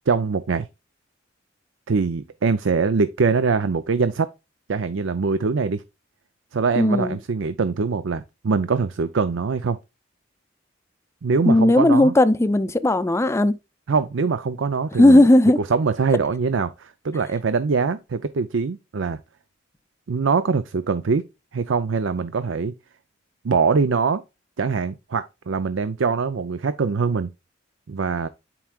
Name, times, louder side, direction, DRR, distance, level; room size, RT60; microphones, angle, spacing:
voice 1, 0.1-0.7 1.9-4.3 4.7-5.8 6.5-9.8 11.2-12.1 13.9-15.2 15.7-19.2 20.1-21.2 21.5-22.7 23.4-24.2 24.6-27.3 27.9-28.3, right 5 dB, 80° right, 0.5 m, -23 dB
voice 2, 6.8-7.2 11.5-13.6 15.0-15.6, left 1 dB, 15° left, 0.5 m, -16 dB
11.0 x 4.6 x 2.4 m
head